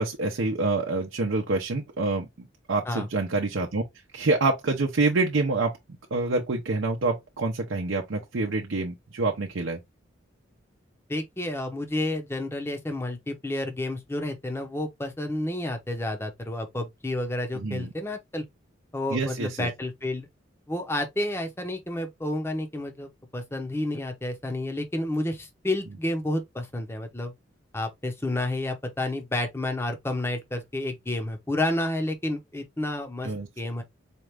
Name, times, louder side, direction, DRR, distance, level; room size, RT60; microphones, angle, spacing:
voice 1, 0.0-3.8 4.1-5.7 6.1-9.8 17.5-17.9 19.1-19.7 33.2-33.5, right 3 dB, 75° right, 0.6 m, -27 dB
voice 2, 11.1-18.4 18.9-20.3 20.7-27.3 27.7-33.8, left 1 dB, 10° left, 0.7 m, -30 dB
4.4 x 2.4 x 3.2 m
head